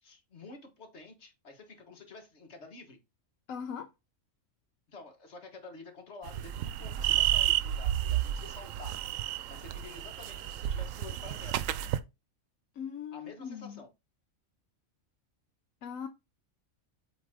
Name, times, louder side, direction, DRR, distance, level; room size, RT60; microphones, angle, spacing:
voice 1, 0.0-3.0 4.9-9.0 9.5-11.7 13.1-13.9, left 3 dB, 55° left, 1.7 m, -49 dB
voice 2, 3.5-3.9 12.8-13.8 15.8-16.1, left 7 dB, 80° left, 1.1 m, -39 dB
sound 1, 6.3-12.0, right 12 dB, 75° right, 0.9 m, -31 dB
8.2 x 3.3 x 3.6 m
omnidirectional pair, 1.4 m